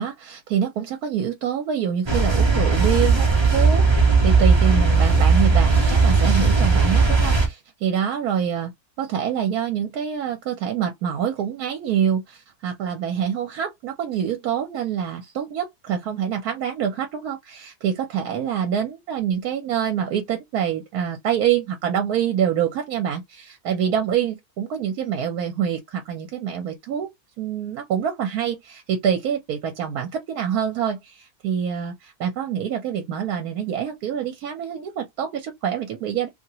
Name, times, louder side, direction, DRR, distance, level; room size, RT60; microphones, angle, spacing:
voice 1, 0.0-8.7 9.0-36.3, right 8 dB, 75° right, 1.2 m, -26 dB
sound 1, 2.1-7.5, right 4 dB, 25° right, 0.7 m, -17 dB
2.8 x 2.8 x 2.8 m
omnidirectional pair, 1.6 m